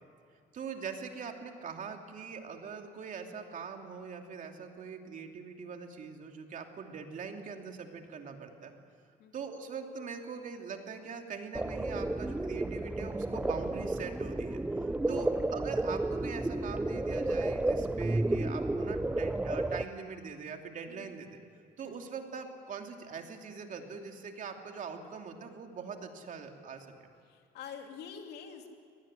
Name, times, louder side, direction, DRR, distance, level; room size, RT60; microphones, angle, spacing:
voice 1, 0.5-8.7 9.3-14.6 15.1-21.4 21.8-27.1, right 5 dB, 50° right, 4 dB, 2.8 m, -42 dB
sound 1, 11.5-19.8, right 2 dB, 10° right, 0.6 m, -32 dB
voice 2, 15.2-15.6 20.9-21.2 21.8-22.1 27.2-28.7, left 7 dB, 75° left, 4 dB, 2.8 m, -47 dB
23.0 x 19.0 x 10.0 m, 2.3 s
cardioid pair, 110°, 17 cm